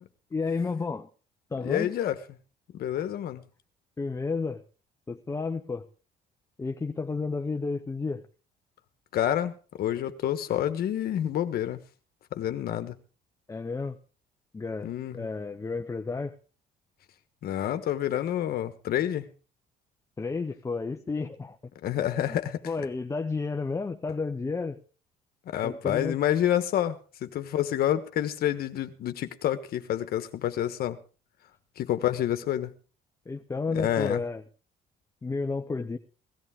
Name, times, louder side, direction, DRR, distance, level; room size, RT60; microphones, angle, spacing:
voice 1, 0.3-1.1 1.5-1.9 3.0-3.1 4.0-4.6 5.1-5.9 6.6-8.2 13.5-14.0 14.5-16.3 20.2-21.6 22.3-22.4 22.6-24.8 25.6-26.2 33.3-34.4 35.2-36.0, left 4 dB, 20° left, 6 dB, 0.8 m, -31 dB
voice 2, 1.6-2.2 2.7-3.4 9.1-11.8 12.3-13.0 14.8-15.3 17.4-19.3 21.8-22.6 25.5-31.0 31.8-32.7 33.7-34.2, left 11 dB, 65° left, 10 dB, 1.3 m, -28 dB
17.5 x 14.0 x 3.7 m, 0.36 s
cardioid pair, 110°, 17 cm